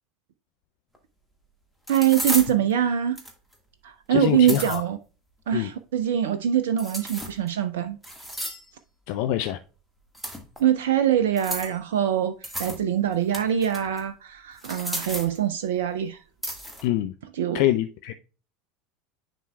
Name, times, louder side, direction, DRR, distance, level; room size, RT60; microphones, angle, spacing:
sound 1, 0.9-1.0 1.9-2.5 3.2-3.5 4.2-4.8 6.8-7.5 8.0-8.7 10.1-10.6 11.4-11.8 12.4-12.8 13.1-14.0 14.6-15.4 16.4-16.9, equal, ahead, 1.5 m, -33 dB
voice 1, 1.9-3.2 3.8-5.0 5.5-8.0 10.6-16.2 17.3-17.6, right 10 dB, 65° right, 0.4 m, -24 dB
voice 2, 4.1-4.8 5.5-5.7 9.1-9.6 16.8-17.1 17.5-18.1, left 13 dB, 55° left, 0.4 m, -25 dB
10.0 x 4.4 x 2.2 m
figure-of-eight pair, 75°, 0 cm